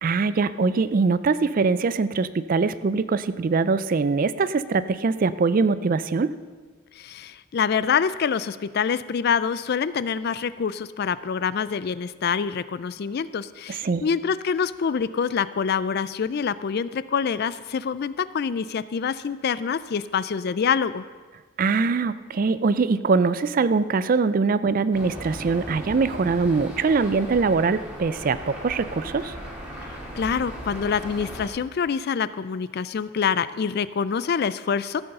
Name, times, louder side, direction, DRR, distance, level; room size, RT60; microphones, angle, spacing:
voice 1, 0.0-6.3 13.8-14.1 21.6-29.3, right 4 dB, 40° right, 15 dB, 0.3 m, -22 dB
voice 2, 7.0-21.0 30.1-35.0, left 6 dB, 45° left, 16 dB, 0.3 m, -26 dB
sound 1, 24.9-31.5, equal, 5° right, 1.9 m, -37 dB
15.0 x 7.9 x 5.4 m, 1.5 s
head